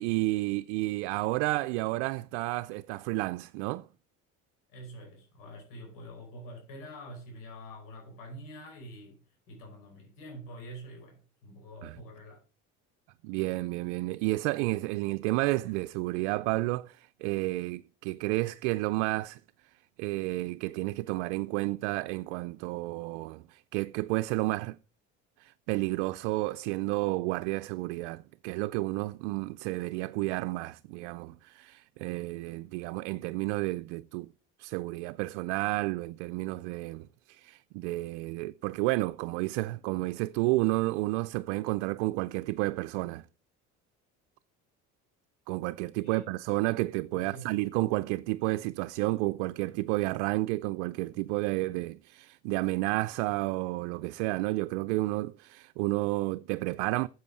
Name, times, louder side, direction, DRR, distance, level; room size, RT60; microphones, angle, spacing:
voice 1, 0.0-3.9 11.8-12.0 13.2-19.4 20.0-24.8 25.4-34.3 34.6-43.2 45.5-57.1, right 20 dB, 85° right, 0.5 m, -31 dB
voice 2, 4.7-12.4 46.0-46.2 47.1-47.7, equal, 75° left, 4.7 m, -46 dB
8.4 x 7.8 x 6.1 m
supercardioid pair, 80°, 34 cm